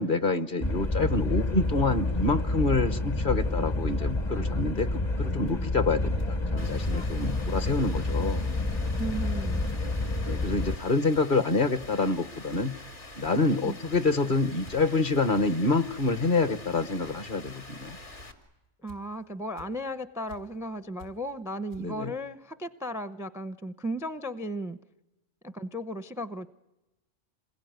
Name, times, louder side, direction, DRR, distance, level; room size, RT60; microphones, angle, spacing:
voice 1, 0.0-8.5 10.3-12.7 13.2-18.0 21.8-22.1, left 3 dB, 40° left, 12 dB, 1.2 m, -27 dB
sound 1, 0.6-10.8, left 2 dB, 25° left, 0.8 m, -29 dB
sound 2, 4.8-4.9 5.5-5.6 6.2-6.4 6.6-6.7 6.9-7.0 7.6-7.8 8.2-8.4 8.8-9.1 9.5-9.8 10.4-10.7 11.1-11.4 11.8-12.1 12.5-12.7 13.0-13.3 13.8-14.2 14.6-14.8 15.3-15.5 15.8-16.2 16.8-16.9 17.4-17.6 18.2-18.4 18.9-19.1 19.6-19.7 20.3-20.4 21.0-21.1 21.7-21.8, left 1 dB, 75° left, 5.9 m, -49 dB
Rain, 6.6-18.3, left 2 dB, 60° left, 3.1 m, -46 dB
voice 2, 9.0-9.6 13.6-13.8 18.8-24.8 25.4-26.5, equal, 5° right, 12 dB, 0.6 m, -35 dB
27.0 x 21.5 x 9.4 m, 1.0 s
omnidirectional pair, 1.4 m